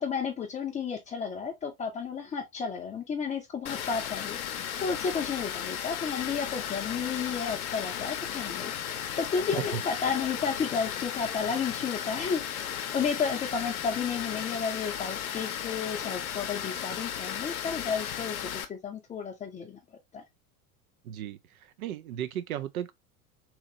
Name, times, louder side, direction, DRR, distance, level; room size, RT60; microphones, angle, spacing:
voice 1, 0.0-19.8 20.1-20.2, left 6 dB, 15° left, 0.5 m, -32 dB
Water, 3.7-18.6, left 9 dB, 70° left, 0.6 m, -35 dB
voice 2, 21.0-22.9, right 10 dB, 70° right, 0.5 m, -35 dB
2.8 x 2.8 x 2.6 m
figure-of-eight pair, 75°, 44 cm